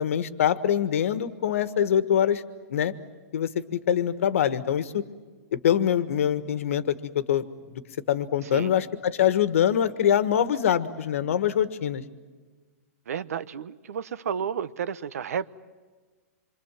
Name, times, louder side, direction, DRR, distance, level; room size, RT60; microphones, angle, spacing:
voice 1, 0.0-2.4 2.7-2.9 3.3-5.0 5.5-7.4 8.1-12.0, left 9 dB, 60° left, 1.5 m, -24 dB
voice 2, 13.1-15.5, right 7 dB, 70° right, 1.0 m, -32 dB
27.0 x 24.0 x 7.5 m
hypercardioid pair, 180°, 8 cm